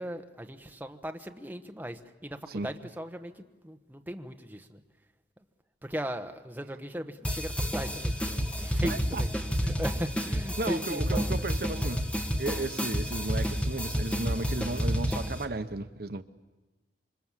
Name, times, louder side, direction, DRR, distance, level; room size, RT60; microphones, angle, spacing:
voice 1, 0.0-4.8 5.8-9.3 9.6-11.0 11.3-11.4, equal, 10° right, 1.1 m, -38 dB
sound 1, 7.2-15.4, equal, 5° left, 1.7 m, -30 dB
voice 2, 8.8-9.2 10.6-12.0 12.4-16.2, right 2 dB, 60° right, 0.9 m, -34 dB
27.0 x 24.0 x 7.4 m
head